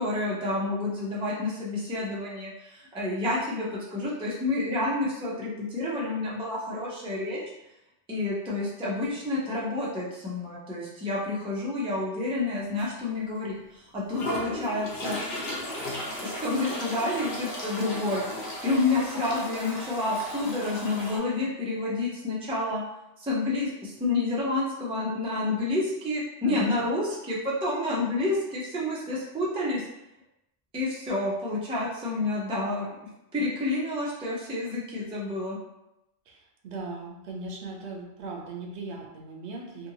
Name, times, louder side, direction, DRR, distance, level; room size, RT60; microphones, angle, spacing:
voice 1, 0.0-7.4 8.1-15.2 16.2-18.2 18.6-22.8 23.2-29.8 30.7-32.9 33.3-35.6, left 2 dB, 10° right, -5 dB, 0.3 m, -29 dB
sound 1, 12.8-12.9 13.4-13.5 14.1-21.2, equal, 50° left, 0.8 m, -35 dB
voice 2, 26.4-26.9 36.3-39.9, right 3 dB, 75° right, 0 dB, 0.8 m, -39 dB
2.7 x 2.5 x 2.7 m, 0.90 s
omnidirectional pair, 1.2 m